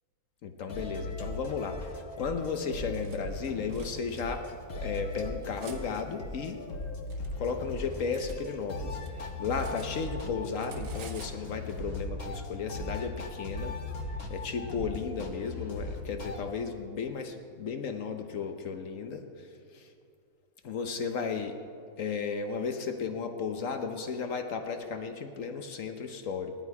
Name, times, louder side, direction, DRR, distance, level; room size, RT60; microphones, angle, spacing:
voice 1, 0.4-4.4 4.7-6.6 7.4-13.8 14.3-19.9 20.6-21.6 22.0-26.6, left 5 dB, 65° left, 6 dB, 0.8 m, -34 dB
sound 1, 0.7-16.5, left 2 dB, 50° left, 1.6 m, -38 dB
Cutlery silverware, 2.6-3.2 3.7-4.2 4.9-5.8 6.7-8.4 8.7-10.3 10.5-11.4, right 6 dB, 75° right, 1.9 m, -51 dB
16.0 x 11.5 x 4.7 m, 2.4 s
omnidirectional pair, 2.3 m